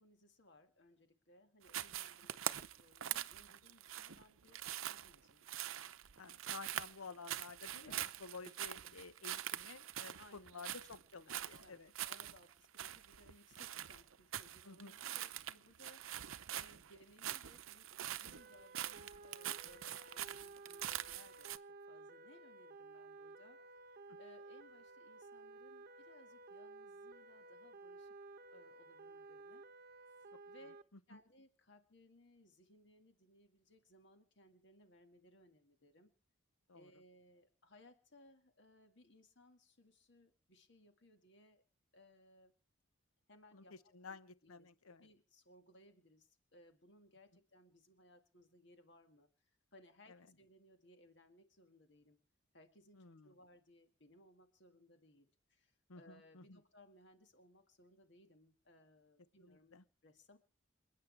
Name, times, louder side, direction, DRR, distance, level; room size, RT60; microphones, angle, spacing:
voice 1, 0.0-5.5 7.8-8.1 10.2-10.6 11.3-21.6 21.9-23.6 24.2-28.2 28.5-29.6 30.5-30.8 31.1-36.1 36.7-41.6 41.9-42.5 43.3-43.7 44.1-44.7 45.0-52.2 52.5-60.4, left 1 dB, 55° left, 6 dB, 2.0 m, -65 dB
sound 1, 1.7-21.6, right 11 dB, 75° right, 0.7 m, -44 dB
voice 2, 6.2-7.9 8.2-11.9 14.6-15.0 30.3-30.4 31.1-31.2 36.7-36.9 43.5-45.1 50.1-50.2 53.0-53.3 55.9-56.6 59.4-59.8, left 4 dB, 90° left, 14 dB, 1.0 m, -53 dB
sound 2, 18.3-30.8, right 3 dB, 45° right, 0.9 m, -55 dB
28.5 x 9.5 x 3.4 m, 0.37 s
head